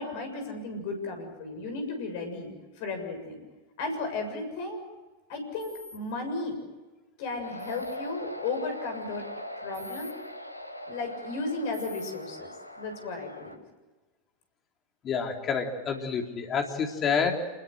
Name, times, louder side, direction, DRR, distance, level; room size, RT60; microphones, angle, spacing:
voice 1, 0.0-3.4 3.8-4.8 5.3-6.6 7.2-9.3 9.6-10.2 10.9-12.5 12.8-13.6, left 3 dB, 50° left, 6 dB, 7.2 m, -34 dB
sound 1, 5.6-6.0 7.6-8.0 9.7-10.1 11.7-12.1, left 1 dB, 85° right, 3.3 m, -45 dB
sound 2, 7.4-13.6, left 1 dB, 85° left, 1.4 m, -41 dB
voice 2, 15.0-17.5, left 6 dB, 30° left, 3 dB, 3.7 m, -28 dB
27.5 x 21.5 x 7.9 m, 1.2 s
figure-of-eight pair, 90°, 0 cm